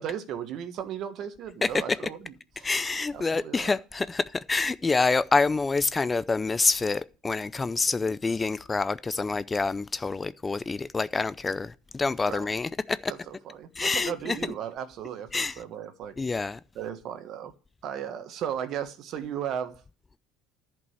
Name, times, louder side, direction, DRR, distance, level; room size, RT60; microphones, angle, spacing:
voice 1, 0.0-2.7 3.1-3.8 12.3-12.5 13.1-16.1 16.7-17.5 17.8-19.8, right 9 dB, 55° right, 1.4 m, -36 dB
voice 2, 1.6-2.0 2.6-13.1 13.8-14.4 15.3-15.6 16.2-16.6, left 4 dB, 20° left, 0.5 m, -27 dB
11.0 x 5.3 x 8.1 m
supercardioid pair, 95°, 0 cm